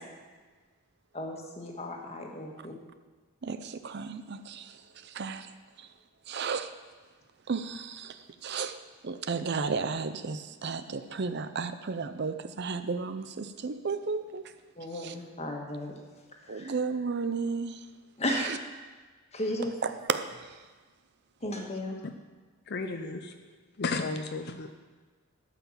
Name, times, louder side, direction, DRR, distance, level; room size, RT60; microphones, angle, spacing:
voice 1, 1.1-2.7 14.8-15.9 16.5-16.7 18.2-18.5 19.3-19.7 21.4-22.0, left 1 dB, 30° left, 1 dB, 1.6 m, -34 dB
voice 2, 3.4-5.5 5.8-5.9 6.3-6.7 7.5-8.8 9.0-14.5 14.9-15.1 16.5-17.9 18.3-18.6 19.8-20.6, right 5 dB, 50° right, 10 dB, 0.5 m, -33 dB
voice 3, 22.7-23.4 23.8-24.7, left 3 dB, 50° left, 7 dB, 0.6 m, -33 dB
13.0 x 5.8 x 7.3 m, 1.4 s
head